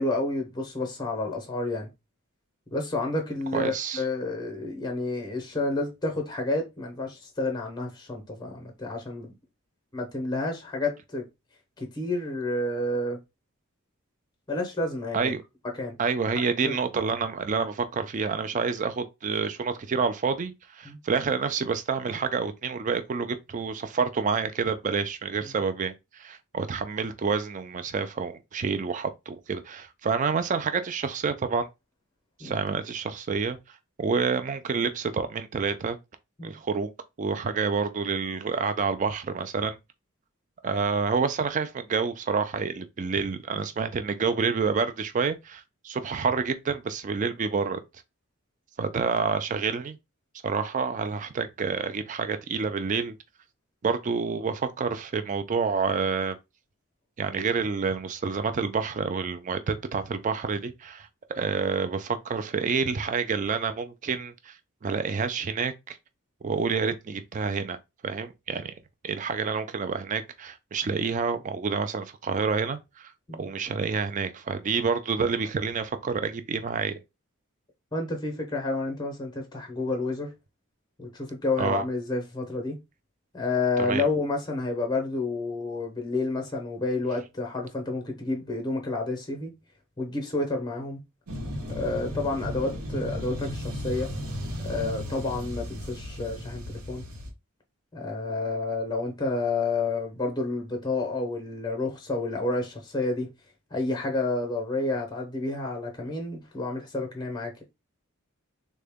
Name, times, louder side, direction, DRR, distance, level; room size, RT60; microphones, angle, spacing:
voice 1, 0.0-1.9 2.7-9.3 9.9-11.2 11.8-13.2 14.5-15.3 15.8-15.9 16.6-16.7 20.8-21.0 32.4-32.6 36.4-36.5 73.3-73.4 77.9-80.3 81.0-82.8 83.3-89.5 90.0-91.0 91.7-94.1 94.6-97.0 97.9-103.3 103.7-107.5, left 2 dB, 20° left, 0.7 m, -30 dB
voice 2, 3.5-4.0 15.1-15.4 16.0-31.7 32.4-36.0 36.4-36.9 37.2-39.8 40.6-47.8 48.8-50.0 50.4-53.2 53.8-56.4 57.2-61.1 61.3-64.6 64.8-66.0 66.4-67.8 68.0-68.7 69.0-73.1 73.4-77.0 81.6-81.8 83.8-84.1, right 5 dB, 35° right, 0.3 m, -28 dB
sound 1, 91.3-97.3, equal, 90° right, 1.0 m, -35 dB
3.7 x 2.1 x 3.4 m
head